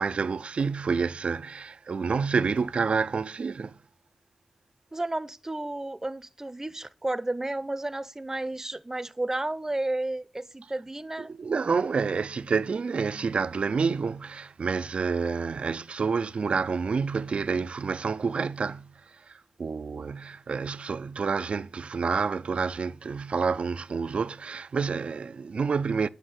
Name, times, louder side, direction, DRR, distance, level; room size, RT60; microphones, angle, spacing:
voice 1, 0.0-3.8 11.2-18.9 19.3-26.1, right 5 dB, 65° right, 0.5 m, -28 dB
Fireworks, 0.6-3.9 4.5-4.6, left 2 dB, 65° left, 3.5 m, -59 dB
voice 2, 4.9-11.3, right 2 dB, 20° right, 0.7 m, -32 dB
10.0 x 6.3 x 5.8 m
cardioid pair, 55°, 2 cm